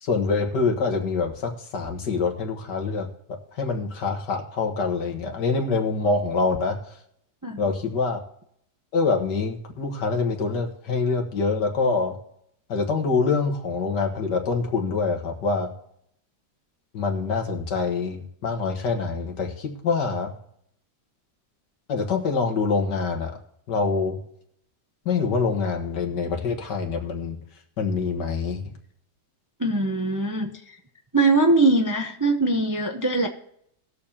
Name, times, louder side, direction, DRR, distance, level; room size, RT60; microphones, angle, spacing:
voice 1, 0.0-6.8 7.6-8.2 8.9-12.2 12.7-15.7 16.9-20.3 21.9-23.4 23.7-24.2 25.1-27.4 27.8-28.6, left 4 dB, 85° left, 3 dB, 2.1 m, -25 dB
voice 2, 29.6-30.5 31.1-33.3, right 2 dB, 20° right, 4 dB, 0.4 m, -21 dB
20.0 x 7.0 x 2.8 m, 0.72 s
omnidirectional pair, 1.8 m